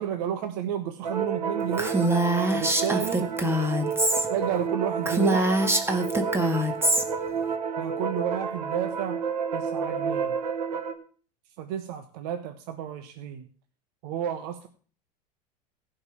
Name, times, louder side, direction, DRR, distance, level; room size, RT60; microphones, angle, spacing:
voice 1, 0.0-2.1 2.5-3.3 4.3-5.6 7.8-9.2 9.5-10.4 11.6-13.5 14.0-14.7, right 9 dB, 60° right, 7 dB, 1.2 m, -31 dB
sound 1, 1.0-10.9, right 6 dB, 80° right, 1.6 m, -30 dB
Female speech woman speaking, 1.8-4.3 4.6-4.7 5.0-7.0, right 1 dB, 10° right, 1.9 m, -24 dB
16.0 x 5.4 x 7.3 m, 0.42 s
hypercardioid pair, 85°, 21 cm